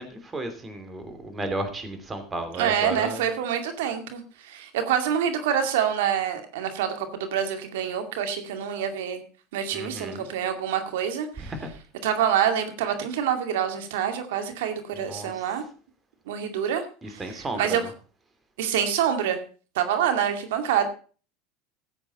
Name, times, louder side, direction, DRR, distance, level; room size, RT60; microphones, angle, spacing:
voice 1, 0.0-3.3 9.7-10.3 11.4-11.7 15.1-15.4 17.0-17.9, right 2 dB, 20° right, 7 dB, 3.0 m, -34 dB
voice 2, 2.6-9.2 9.5-11.5 12.0-15.6 16.3-17.8 18.6-19.4 19.8-20.9, right 9 dB, 80° right, 7 dB, 2.3 m, -26 dB
14.5 x 8.1 x 4.2 m, 0.38 s
hypercardioid pair, 95°, 0 cm